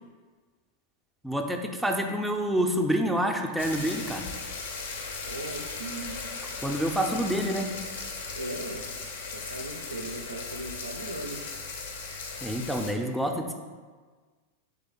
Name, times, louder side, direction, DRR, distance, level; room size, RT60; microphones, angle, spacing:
voice 1, 1.2-4.3 6.6-7.7 12.4-13.5, equal, ahead, 2 dB, 0.4 m, -27 dB
sound 1, 3.6-12.9, left 4 dB, 60° left, 0.5 m, -37 dB
voice 2, 5.3-6.2 8.3-8.8 9.3-11.4, right 2 dB, 80° right, 5 dB, 0.4 m, -38 dB
3.8 x 3.2 x 3.7 m, 1.5 s
figure-of-eight pair, 90°, 0 cm